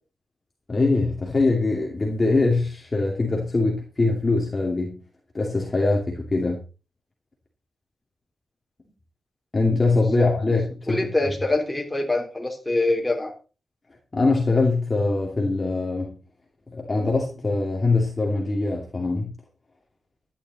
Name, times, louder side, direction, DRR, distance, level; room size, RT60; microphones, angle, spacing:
voice 1, 0.7-5.0 5.3-6.6 9.5-11.1 14.1-16.2 16.7-19.3, left 3 dB, 25° left, -1 dB, 2.6 m, -23 dB
voice 2, 10.9-13.3, left 2 dB, 10° left, 0 dB, 3.7 m, -24 dB
12.5 x 10.0 x 4.2 m, 0.34 s
wide cardioid pair, 165°, 0 cm